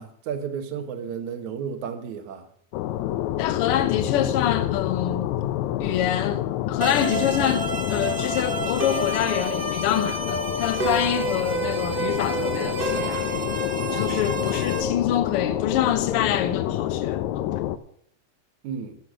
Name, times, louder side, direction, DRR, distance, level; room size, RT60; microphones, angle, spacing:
voice 1, 0.0-2.5 14.1-14.5 18.6-19.0, right 7 dB, 75° right, 2.6 m, -33 dB
sound 1, 2.7-17.8, left 13 dB, 80° left, 1.9 m, -28 dB
voice 2, 3.4-5.3 5.8-13.3 13.9-17.5, left 10 dB, 65° left, 1.6 m, -26 dB
sound 2, 6.8-14.8, right 2 dB, 40° right, 0.7 m, -29 dB
15.5 x 6.5 x 6.3 m
omnidirectional pair, 3.4 m